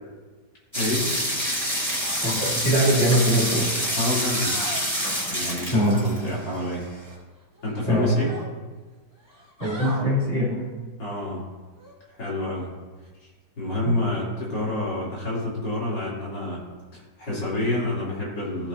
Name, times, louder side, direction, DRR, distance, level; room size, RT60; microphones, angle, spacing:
sound 1, 0.7-6.6, equal, 10° left, 3.4 m, -27 dB
voice 1, 0.8-1.1 4.0-4.6 5.3-6.9 7.6-8.3 11.0-11.5 12.2-12.7 13.2-13.3 13.6-16.6 16.9-18.7, left 1 dB, 90° left, -7 dB, 3.7 m, -28 dB
voice 2, 2.2-3.7 5.7-6.0 7.9-8.2 9.6-10.7 13.8-14.0, equal, 40° left, -6 dB, 3.0 m, -22 dB
sound 2, 2.8-3.0 3.4-3.5 4.0-4.8 6.2-7.2 7.6-8.5 9.2-10.1 11.8-11.9, right 2 dB, 15° right, 2.1 m, -40 dB
15.5 x 7.2 x 2.7 m, 1.3 s
omnidirectional pair, 1.9 m